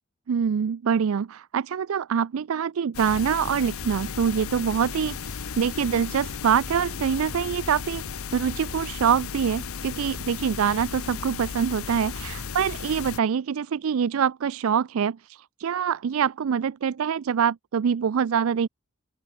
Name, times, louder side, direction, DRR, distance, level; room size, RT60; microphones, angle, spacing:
voice 1, 0.3-8.1 8.3-18.7, right 7 dB, 80° right, 0.4 m, -25 dB
sound 1, 2.9-13.2, left 6 dB, 85° left, 0.8 m, -35 dB
open air
head